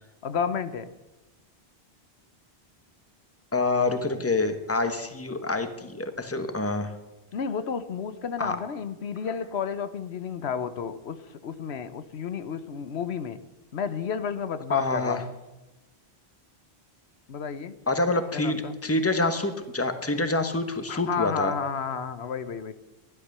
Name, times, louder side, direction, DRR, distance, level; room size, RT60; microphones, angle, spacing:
voice 1, 0.2-0.9 7.3-13.4 13.7-15.3 17.3-17.8 18.3-18.8 20.9-22.7, left 6 dB, 85° left, 12 dB, 1.1 m, -31 dB
voice 2, 3.5-6.9 8.4-8.6 14.7-15.2 17.9-21.5, left 2 dB, 15° left, 8 dB, 1.2 m, -26 dB
14.0 x 11.0 x 6.7 m, 1.1 s
omnidirectional pair, 1.1 m